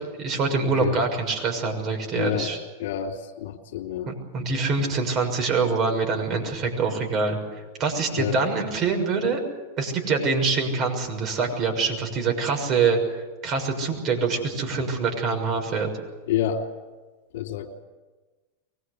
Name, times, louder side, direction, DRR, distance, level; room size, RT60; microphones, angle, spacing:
voice 1, 0.2-2.6 4.1-7.4 7.8-9.4 9.8-13.0 13.4-15.9, right 4 dB, 40° right, 3 dB, 6.4 m, -25 dB
voice 2, 2.1-2.5 2.8-4.1 8.2-8.4 16.3-16.7 17.3-17.8, left 10 dB, 70° left, 2 dB, 3.0 m, -28 dB
23.5 x 19.5 x 8.3 m, 1.3 s
hypercardioid pair, 110°, 0 cm